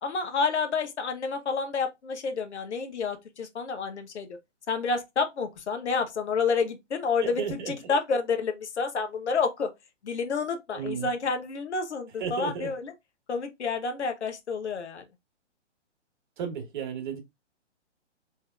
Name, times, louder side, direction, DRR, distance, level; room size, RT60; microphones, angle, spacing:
voice 1, 0.0-4.3 4.7-9.7 10.0-12.9 13.3-15.0, left 5 dB, 65° left, 1.1 m, -29 dB
voice 2, 7.2-7.7 10.7-11.1 12.2-12.7 16.4-17.2, right 7 dB, 40° right, 1.4 m, -33 dB
4.6 x 3.5 x 2.4 m
figure-of-eight pair, 125°, 36 cm